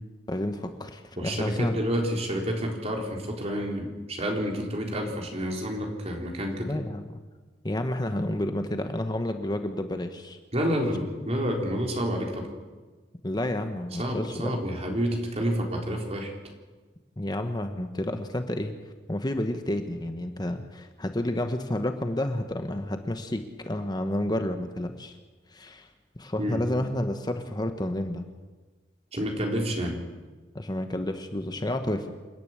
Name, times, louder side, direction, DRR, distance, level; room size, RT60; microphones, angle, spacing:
voice 1, 0.3-1.8 6.6-7.2 7.6-10.4 13.2-14.6 17.2-18.7 19.1-25.1 25.5-25.9 26.2-28.2 30.5-32.1, left 1 dB, 25° left, 7 dB, 1.1 m, -30 dB
voice 2, 1.2-6.7 10.5-12.5 14.0-16.3 26.4-26.7 29.1-30.0, equal, 40° right, 1 dB, 3.8 m, -29 dB
28.0 x 10.5 x 9.0 m, 1.3 s
head